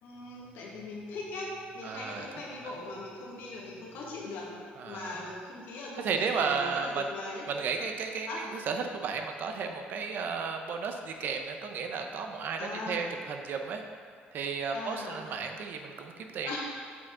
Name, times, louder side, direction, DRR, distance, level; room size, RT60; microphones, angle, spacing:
voice 1, 0.0-4.6 4.8-7.4 8.3-8.4 12.6-13.1 14.7-15.2 16.4-16.6, left 2 dB, 80° left, -3 dB, 1.7 m, -40 dB
voice 2, 1.8-2.3 2.6-2.7 4.8-5.2 6.0-7.1 7.5-13.8 14.3-16.6, right 5 dB, 60° right, 4 dB, 0.7 m, -33 dB
8.1 x 4.9 x 3.8 m, 2.1 s
cardioid pair, 110°, 4 cm